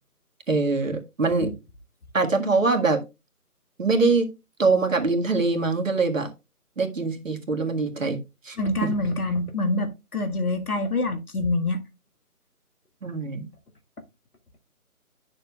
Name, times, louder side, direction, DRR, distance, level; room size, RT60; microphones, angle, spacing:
voice 1, 0.5-1.5 2.1-3.0 3.8-4.3 4.6-6.3 6.8-8.2 8.4-8.9 13.0-13.5, right 3 dB, 55° right, 1.7 m, -23 dB
voice 2, 8.6-11.8, left 2 dB, 70° left, 1.8 m, -26 dB
10.5 x 6.8 x 2.3 m
figure-of-eight pair, 170°, 45 cm